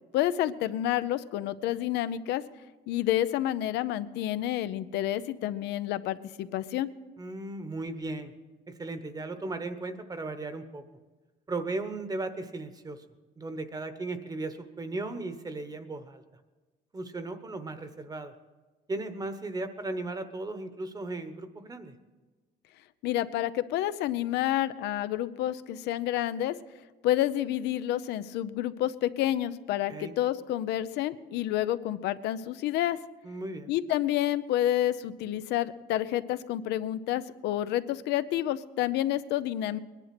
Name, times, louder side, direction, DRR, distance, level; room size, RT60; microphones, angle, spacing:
voice 1, 0.1-2.4 2.9-6.9 23.0-26.5 27.0-33.0 33.7-39.8, left 13 dB, 85° left, 13 dB, 0.7 m, -29 dB
voice 2, 7.2-8.3 8.7-10.8 11.5-13.0 13.4-16.2 16.9-18.3 18.9-21.9 29.9-30.1 33.2-33.7, right 2 dB, 20° right, 10 dB, 1.1 m, -36 dB
20.5 x 10.5 x 6.0 m, 1.3 s
cardioid pair, 110°, 17 cm